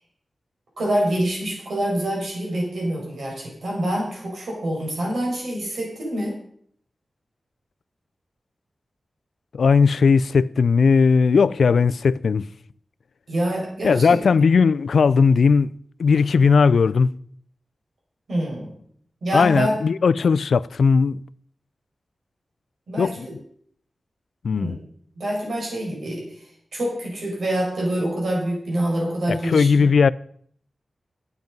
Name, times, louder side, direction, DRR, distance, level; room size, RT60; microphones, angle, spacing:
voice 1, 0.8-6.4 13.3-14.2 18.3-18.7 19.2-19.8 22.9-23.3 24.5-24.7 25.2-26.2 26.7-29.9, right 1 dB, 80° right, 5.3 m, -26 dB
voice 2, 9.5-12.5 13.8-15.7 16.0-17.1 19.3-21.2 23.0-23.3 24.4-24.8 29.3-30.1, left 5 dB, 90° left, 0.4 m, -17 dB
12.0 x 9.1 x 5.3 m
wide cardioid pair, 120°, 0 cm